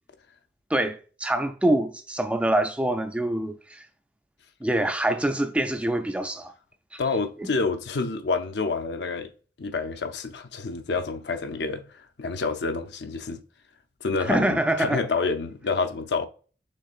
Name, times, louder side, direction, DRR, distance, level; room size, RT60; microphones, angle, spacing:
voice 1, 0.7-3.8 4.6-6.5 6.9-7.0 14.3-15.0, right 1 dB, 5° right, 0.3 m, -25 dB
voice 2, 7.0-9.3 9.6-11.8 12.2-13.4 14.0-16.3, left 4 dB, 80° left, 0.6 m, -28 dB
6.4 x 3.3 x 2.4 m
head